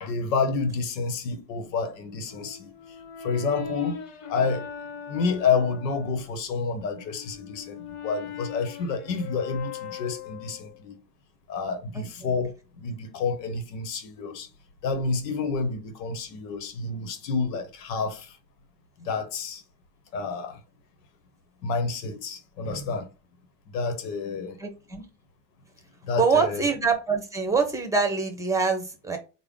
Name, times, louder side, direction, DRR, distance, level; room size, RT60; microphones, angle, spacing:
voice 1, 0.0-2.7 3.2-4.0 4.3-4.7 5.0-11.0 11.5-14.5 14.8-18.3 19.0-19.6 20.1-20.6 21.6-23.1 23.7-24.6 26.1-26.7, left 4 dB, 85° left, 1.0 m, -29 dB
Brass instrument, 2.3-6.3 6.8-10.9, left 6 dB, 60° left, 1.2 m, -40 dB
voice 2, 24.6-25.1 26.2-29.2, right 5 dB, 5° right, 0.9 m, -24 dB
3.4 x 2.1 x 3.6 m
hypercardioid pair, 95°, 48 cm